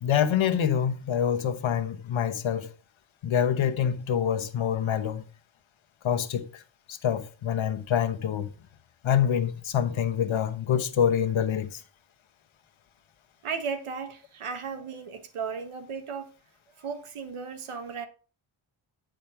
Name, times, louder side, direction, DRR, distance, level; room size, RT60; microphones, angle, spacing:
voice 1, 0.0-2.7 3.2-5.2 6.0-6.6 6.9-8.5 9.0-11.8, left 8 dB, 70° left, 1.1 m, -26 dB
voice 2, 13.4-16.3 16.8-18.1, right 5 dB, 80° right, 1.5 m, -35 dB
9.0 x 5.2 x 5.6 m
wide cardioid pair, 120°, 50 cm